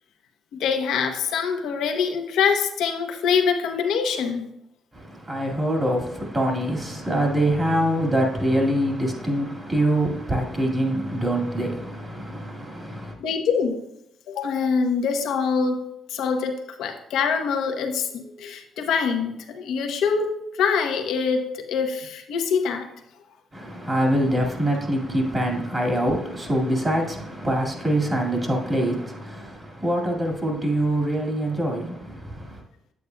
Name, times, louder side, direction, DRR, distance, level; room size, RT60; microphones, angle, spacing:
voice 1, 0.5-4.4 13.2-13.8 14.3-15.8 16.1-22.9, left 6 dB, 80° left, 0.9 m, -24 dB
voice 2, 4.9-13.2 23.5-32.6, right 1 dB, 25° right, 2.0 m, -24 dB
8.4 x 8.2 x 2.2 m
cardioid pair, 90°, 0 cm